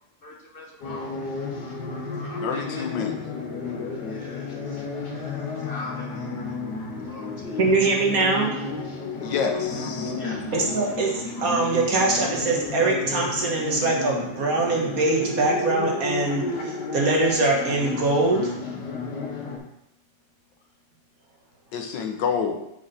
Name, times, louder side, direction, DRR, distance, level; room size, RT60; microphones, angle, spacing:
voice 1, 0.2-1.2 2.1-2.9 4.0-7.8 9.2-9.3 10.1-10.5, left 2 dB, 40° left, 0 dB, 0.9 m, -42 dB
sound 1, 0.8-19.6, left 3 dB, 70° left, 1.8 m, -32 dB
voice 2, 2.4-3.2 9.2-10.2 21.7-22.6, left 6 dB, 85° left, 4 dB, 1.6 m, -28 dB
voice 3, 7.6-8.6 10.5-18.6, right 2 dB, 55° right, 0 dB, 1.6 m, -23 dB
6.7 x 6.1 x 4.1 m, 0.81 s
omnidirectional pair, 1.9 m